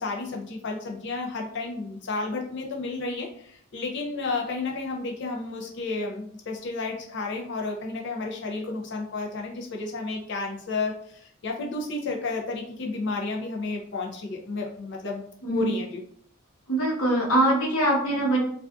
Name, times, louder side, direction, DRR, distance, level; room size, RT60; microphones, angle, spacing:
voice 1, 0.0-15.2 15.5-16.0, left 3 dB, 55° left, 0 dB, 0.4 m, -32 dB
voice 2, 16.7-18.4, right 1 dB, 75° left, -3 dB, 0.9 m, -23 dB
2.4 x 2.3 x 2.3 m, 0.62 s
head